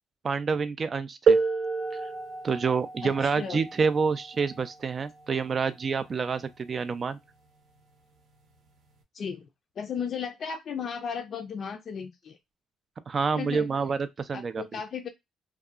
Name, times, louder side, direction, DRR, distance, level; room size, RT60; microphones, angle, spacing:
voice 1, 0.2-1.4 2.4-7.2 13.1-14.6, right 5 dB, 35° right, 0.3 m, -28 dB
sound 1, 1.3-6.7 7.8-7.9 8.7-8.9, right 5 dB, 70° right, 0.7 m, -30 dB
voice 2, 3.0-3.6 9.1-9.5 9.8-12.4 13.3-13.7 14.3-15.1, left 6 dB, 50° left, 0.4 m, -35 dB
2.7 x 2.3 x 2.3 m
cardioid pair, 110°, 0 cm